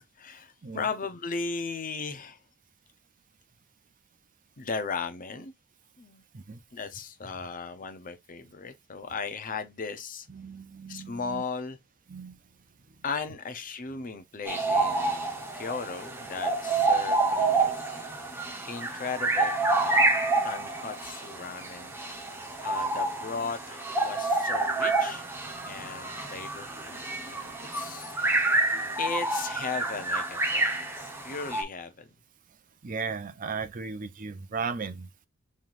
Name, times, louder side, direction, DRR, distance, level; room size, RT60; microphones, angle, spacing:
voice 1, 0.0-2.4 4.6-5.5 6.0-6.2 6.7-10.3 10.9-11.8 13.0-18.0 18.7-20.1 20.4-22.0 22.6-25.3 25.7-27.0 27.4-28.2 29.0-32.1, left 5 dB, 40° left, 0.7 m, -36 dB
voice 2, 10.3-11.4 12.1-12.4 32.8-35.1, right 5 dB, 40° right, 0.5 m, -36 dB
sound 1, 14.5-31.6, right 3 dB, 10° right, 0.9 m, -28 dB
5.6 x 3.2 x 2.5 m
head